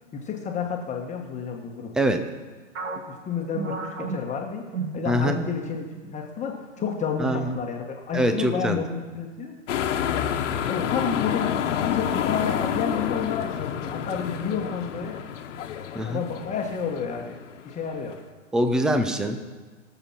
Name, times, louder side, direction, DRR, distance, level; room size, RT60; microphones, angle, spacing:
voice 1, 0.1-1.9 3.1-4.6 4.9-9.5 10.1-10.3 10.6-15.2 16.1-17.4 17.6-18.2, left 6 dB, 20° left, 1 dB, 1.3 m, -30 dB
sound 1, 2.7-5.6 5.9-6.1 6.8-7.2, right 4 dB, 65° right, 2.0 m, -34 dB
voice 2, 5.0-5.4 7.2-7.5 8.1-8.8 16.0-16.2 18.5-19.4, equal, ahead, 8 dB, 0.4 m, -23 dB
sound 2, 9.7-18.1, left 9 dB, 65° left, 1.3 m, -29 dB
19.0 x 7.1 x 5.8 m, 1.4 s
hypercardioid pair, 125°, 39 cm